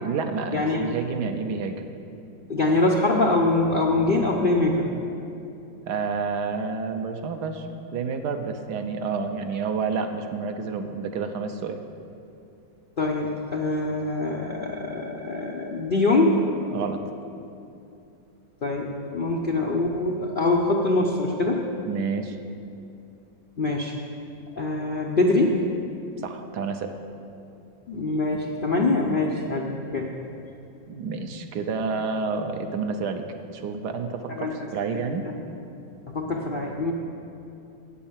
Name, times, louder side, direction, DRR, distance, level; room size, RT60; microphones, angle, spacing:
voice 1, 0.0-1.8 5.9-7.7 7.9-11.8 16.7-17.0 17.4-17.5 21.9-22.4 26.2-26.9 30.9-33.2 33.5-35.2, right 5 dB, 65° right, 6 dB, 1.2 m, -29 dB
voice 2, 0.5-1.0 2.5-4.9 13.0-16.4 18.6-21.6 23.6-23.9 24.6-25.6 27.9-30.1 34.3-34.7 34.9-35.3 36.1-36.9, left 2 dB, 80° left, -2 dB, 0.4 m, -24 dB
9.1 x 8.7 x 7.3 m, 2.7 s
omnidirectional pair, 2.1 m